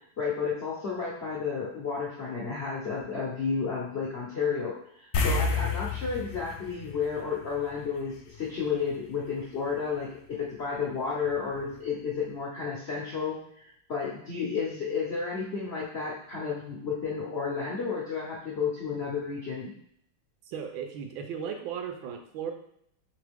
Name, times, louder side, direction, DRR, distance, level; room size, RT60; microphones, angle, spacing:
voice 1, 0.2-19.7, left 5 dB, 65° left, -5 dB, 0.6 m, -32 dB
sound 1, 5.1-7.9 8.2-8.4 11.3-11.4 11.7-11.8, left 4 dB, 80° left, 1.3 m, -30 dB
voice 2, 20.5-22.5, right 7 dB, 80° right, 5 dB, 1.4 m, -36 dB
3.6 x 3.4 x 3.4 m, 0.70 s
omnidirectional pair, 2.1 m